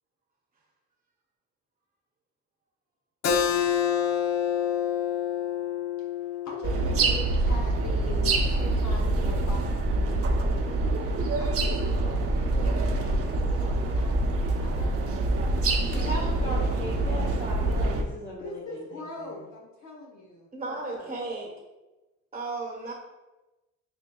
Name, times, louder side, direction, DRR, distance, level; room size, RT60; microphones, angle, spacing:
Keyboard (musical), 3.2-8.4, left 9 dB, 55° left, 0.5 m, -28 dB
voice 1, 6.2-10.8 11.4-14.3 14.6-15.6 18.3-21.1, left 2 dB, 70° left, -1 dB, 0.9 m, -42 dB
sound 1, 6.6-18.0, right 2 dB, 50° right, 0.7 m, -25 dB
voice 2, 15.8-19.3, left 1 dB, 30° left, -4 dB, 1.0 m, -37 dB
voice 3, 20.5-21.5 22.3-22.9, right 3 dB, 25° right, -3 dB, 0.9 m, -34 dB
6.6 x 2.6 x 2.3 m, 1.1 s
cardioid pair, 90°, 30 cm